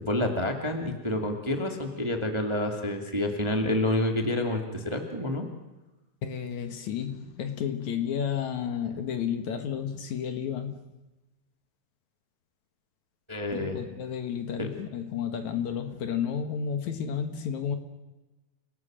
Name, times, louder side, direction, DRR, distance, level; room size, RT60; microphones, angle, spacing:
voice 1, 0.0-5.5 13.3-13.8 14.6-14.7, left 1 dB, 10° right, 4 dB, 1.7 m, -28 dB
voice 2, 6.2-10.8 13.5-17.8, left 8 dB, 65° left, 8 dB, 2.6 m, -32 dB
29.0 x 17.5 x 7.6 m, 1.1 s
omnidirectional pair, 3.8 m